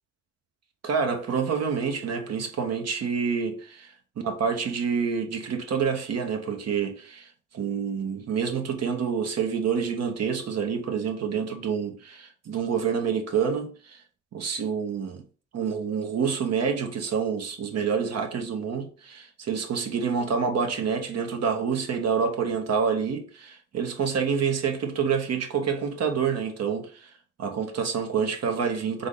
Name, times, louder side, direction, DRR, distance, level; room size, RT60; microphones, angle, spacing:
voice 1, 0.8-3.9 4.2-7.3 7.5-14.0 14.3-15.2 15.5-27.1 27.4-29.1, right 6 dB, 55° right, 0.9 m, -27 dB
3.7 x 3.5 x 3.7 m
cardioid pair, 90°, 30 cm